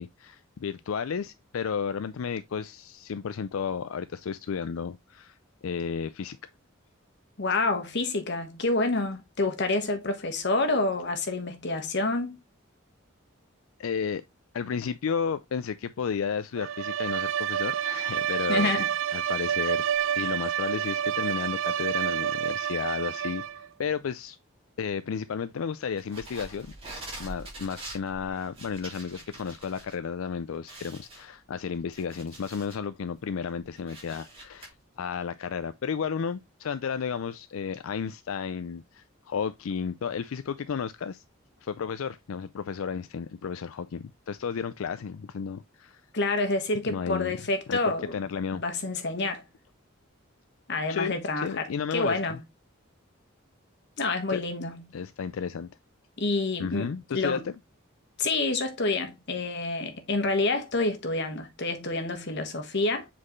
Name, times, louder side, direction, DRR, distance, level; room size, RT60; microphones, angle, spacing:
voice 1, 0.0-5.4 5.6-6.4 13.8-14.2 14.5-18.7 19.1-19.9 20.1-23.4 23.8-24.4 24.8-26.7 27.2-41.2 41.6-46.0 46.8-47.3 47.7-47.8 48.1-48.6 50.9-52.4 54.3-54.4 54.9-55.7 56.6-57.5, left 6 dB, 85° left, 0.4 m, -33 dB
voice 2, 7.4-12.4 18.5-18.9 46.1-48.1 48.5-49.4 50.7-52.4 54.0-54.9 56.2-57.4 58.2-63.1, left 3 dB, 55° left, 1.3 m, -28 dB
Bowed string instrument, 16.6-23.7, right 9 dB, 65° right, 0.4 m, -29 dB
sound 1, 26.0-29.9 30.3-30.4 30.7-32.8 33.3-34.7, right 2 dB, 30° right, 3.7 m, -44 dB
7.5 x 4.3 x 3.1 m
head